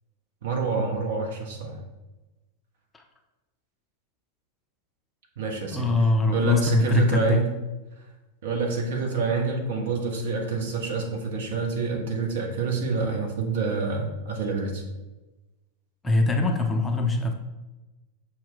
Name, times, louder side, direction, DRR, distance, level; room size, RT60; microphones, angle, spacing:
voice 1, 0.4-1.8 5.4-5.9 6.3-7.5 8.4-14.8, right 4 dB, 55° right, 1 dB, 0.8 m, -27 dB
voice 2, 5.7-7.4 16.0-17.3, left 2 dB, 15° left, 3 dB, 0.5 m, -22 dB
5.9 x 2.2 x 3.7 m, 1.1 s
figure-of-eight pair, 90°, 0 cm